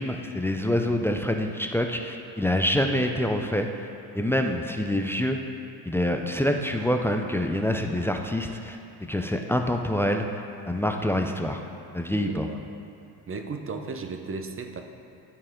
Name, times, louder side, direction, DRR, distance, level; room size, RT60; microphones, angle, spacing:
voice 1, 0.0-3.7 4.1-5.4 5.8-11.6 11.9-12.5, left 1 dB, 5° left, 4 dB, 0.4 m, -26 dB
voice 2, 12.2-12.6 13.3-14.8, right 4 dB, 25° right, 5 dB, 0.8 m, -35 dB
12.0 x 4.2 x 3.7 m, 2.7 s
supercardioid pair, 70°, 48 cm